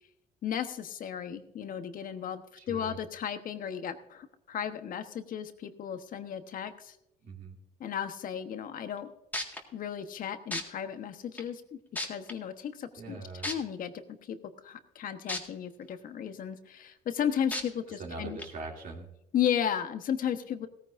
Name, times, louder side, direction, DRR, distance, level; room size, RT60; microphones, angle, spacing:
voice 1, 0.4-2.4 2.7-7.0 7.8-9.1 9.7-13.9 14.3-14.4 14.6-18.4 19.3-20.7, left 9 dB, 55° left, 9 dB, 1.2 m, -34 dB
voice 2, 2.6-3.0 7.2-7.5 12.9-13.5 18.0-19.1, right 3 dB, 55° right, -1 dB, 2.8 m, -41 dB
Aerosol Spray.L, 9.0-9.1 9.3-9.6 10.5-10.6 11.4-11.5 11.9-12.3 13.4-13.5 15.3-15.4 15.9-16.0 17.5-17.6 18.4-18.5, left 1 dB, 10° left, 1.8 m, -33 dB
16.5 x 14.5 x 2.6 m, 0.83 s
cardioid pair, 110°, 17 cm